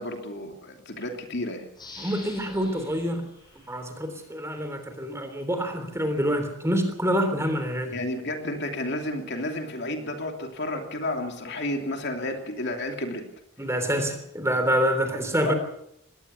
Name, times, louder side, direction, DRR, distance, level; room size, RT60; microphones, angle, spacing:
voice 1, 0.0-1.6 7.9-13.2 15.4-15.5, left 1 dB, 50° left, 4 dB, 2.9 m, -31 dB
sound 1, 1.7-4.4 4.9-5.0, left 3 dB, 20° left, 6.7 m, -47 dB
voice 2, 2.0-3.3 3.7-7.9 13.6-15.5, equal, 15° right, 7 dB, 3.3 m, -26 dB
21.5 x 17.5 x 7.0 m, 0.75 s
head